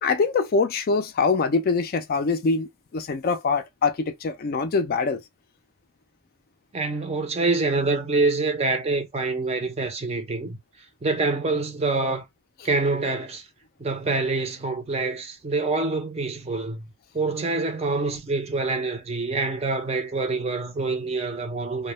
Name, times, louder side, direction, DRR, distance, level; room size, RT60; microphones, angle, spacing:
voice 1, 0.0-5.2, left 4 dB, 45° left, 0.3 m, -24 dB
voice 2, 6.7-10.6 11.0-12.3 12.6-13.5 13.8-16.9 17.1-21.9, right 3 dB, 30° right, 0.5 m, -26 dB
2.1 x 2.0 x 3.0 m
head